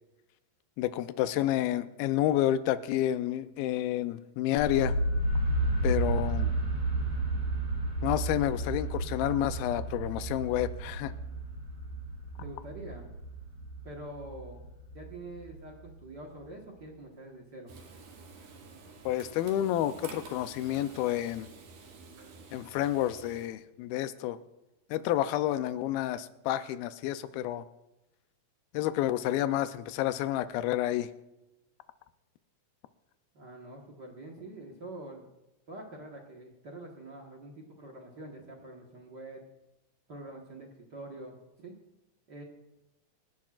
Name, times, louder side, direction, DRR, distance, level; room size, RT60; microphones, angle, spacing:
voice 1, 0.8-5.0 5.8-6.5 8.0-11.1 19.1-21.5 22.5-24.4 24.9-27.6 28.7-31.1, left 13 dB, 90° left, 11 dB, 2.5 m, -29 dB
sound 1, 4.6-16.4, right 2 dB, 50° right, 4.7 m, -32 dB
voice 2, 12.4-13.1 13.8-14.6 14.9-17.7 33.3-35.3 35.7-39.4 40.1-41.7 42.3-42.4, right 1 dB, 65° right, -1 dB, 1.0 m, -45 dB
Frying (food), 17.7-23.5, right 4 dB, 85° right, 3.9 m, -49 dB
28.5 x 12.0 x 2.4 m, 0.97 s
omnidirectional pair, 4.2 m